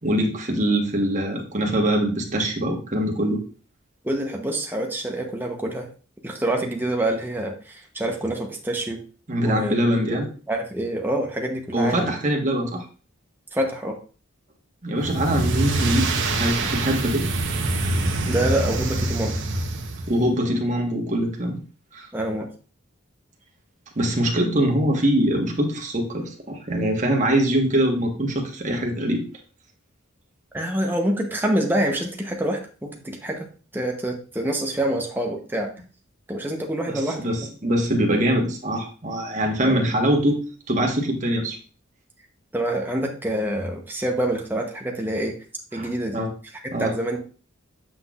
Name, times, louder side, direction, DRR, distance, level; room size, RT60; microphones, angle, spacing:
voice 1, 0.0-3.4 9.3-10.3 11.7-12.8 14.8-17.3 18.0-18.4 20.1-21.6 21.9-22.1 23.9-29.2 36.9-41.6 45.7-46.3 46.7-46.9, right 1 dB, 35° right, 1 dB, 1.3 m, -23 dB
voice 2, 4.0-5.9 6.2-9.0 9.4-10.2 10.5-12.1 13.5-14.0 18.2-19.4 22.1-22.5 30.5-33.5 33.7-35.7 36.3-37.3 39.6-39.9 42.5-45.3 45.7-46.2 46.6-47.2, right 1 dB, 10° right, 1 dB, 0.9 m, -26 dB
sound 1, 15.0-20.3, right 2 dB, 70° right, 1.0 m, -25 dB
7.6 x 5.9 x 2.5 m, 0.37 s
head